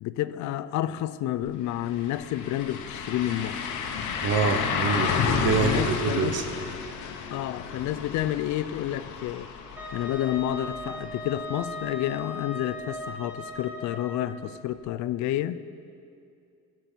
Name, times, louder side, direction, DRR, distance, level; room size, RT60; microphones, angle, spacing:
voice 1, 0.0-3.6 5.2-6.4 7.3-9.5 9.9-15.6, left 12 dB, 70° left, 14 dB, 0.5 m, -30 dB
sound 1, 1.4-1.5 1.8-11.6 12.0-12.1 14.9-15.0, left 6 dB, 85° left, 1.2 m, -31 dB
voice 2, 4.2-6.4, right 5 dB, 55° right, 7 dB, 1.1 m, -26 dB
Wind instrument woodwind instrument, 9.8-14.5, left 1 dB, 5° right, 2.1 m, -38 dB
16.0 x 6.1 x 6.9 m, 2.4 s
cardioid pair, 120°, 30 cm